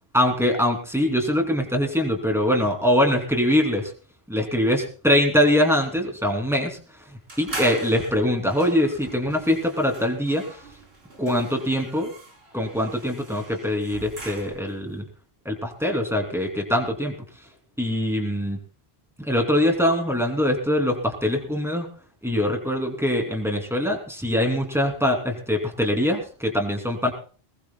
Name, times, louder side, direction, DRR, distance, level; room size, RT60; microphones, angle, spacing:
voice 1, 0.1-3.9 4.3-6.8 7.4-10.4 11.2-12.1 12.5-15.0 15.4-17.1 17.8-18.6 19.2-21.9 22.2-27.1, left 1 dB, ahead, 1 dB, 2.9 m, -23 dB
sound 1, 7.3-14.8, right 2 dB, 85° right, 3.8 m, -40 dB
20.5 x 20.5 x 2.3 m, 0.40 s
omnidirectional pair, 1.0 m